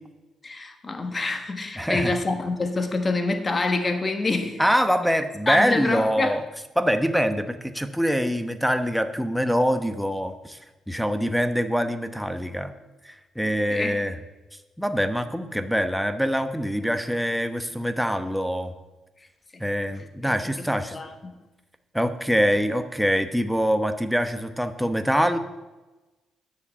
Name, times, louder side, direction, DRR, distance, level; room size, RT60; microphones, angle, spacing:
voice 1, 0.4-4.6 5.5-6.4 13.7-14.0 19.5-19.6 20.0-20.7 20.9-21.3, left 3 dB, 30° left, 6 dB, 1.5 m, -27 dB
voice 2, 1.8-2.1 4.6-6.4 6.8-10.6 10.9-12.7 13.0-14.2 14.8-18.7 19.6-21.0 21.9-25.4, equal, ahead, 8 dB, 1.0 m, -24 dB
10.0 x 6.6 x 8.7 m, 1.1 s
cardioid pair, 90°, 0 cm